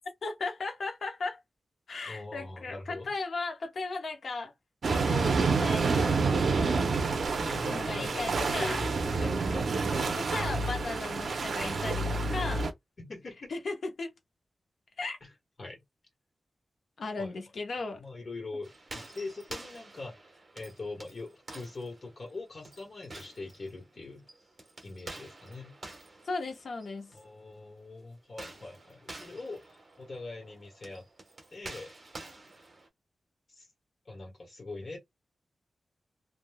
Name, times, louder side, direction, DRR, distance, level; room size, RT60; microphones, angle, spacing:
voice 1, 0.2-1.4 1.9-4.5 4.9-6.2 7.7-8.8 10.3-12.7 13.5-14.1 15.0-15.2 17.0-18.0 26.3-27.1, left 3 dB, 60° left, 0.8 m, -36 dB
voice 2, 2.1-3.1 6.3-6.9 7.3-10.2 13.0-13.5 15.2-15.3 15.6-15.8 17.2-17.3 18.0-24.2 24.8-25.7 27.1-31.1 31.5-31.9 33.5-33.7 34.0-35.0, left 3 dB, 45° left, 1.3 m, -42 dB
sound 1, 4.8-12.7, right 4 dB, 65° right, 0.6 m, -28 dB
sound 2, 18.6-27.3 28.2-32.9, right 2 dB, 35° right, 1.2 m, -48 dB
3.3 x 2.5 x 2.2 m
wide cardioid pair, 165°, 0 cm